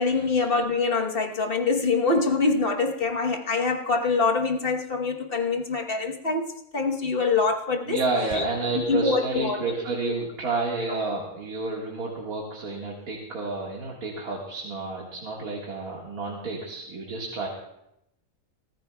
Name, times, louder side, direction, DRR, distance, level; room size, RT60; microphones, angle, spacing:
voice 1, 0.0-6.5 6.7-8.0 8.3-8.5 8.7-9.7 10.1-10.2 10.9-11.0, left 4 dB, 40° left, 3 dB, 1.3 m, -24 dB
voice 2, 7.8-17.5, right 3 dB, 80° right, -2 dB, 2.3 m, -30 dB
24.5 x 14.0 x 2.3 m, 0.82 s
omnidirectional pair, 1.5 m